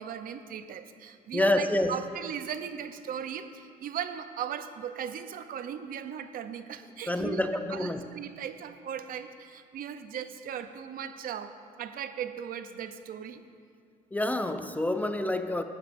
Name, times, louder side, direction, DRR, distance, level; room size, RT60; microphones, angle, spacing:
voice 1, 0.0-7.4 7.7-13.4, right 8 dB, 60° right, 10 dB, 0.6 m, -38 dB
voice 2, 1.3-2.0 7.1-8.0 14.1-15.6, left 1 dB, 10° left, 8 dB, 0.4 m, -27 dB
15.5 x 12.0 x 2.6 m, 2.2 s
cardioid pair, 110°, 17 cm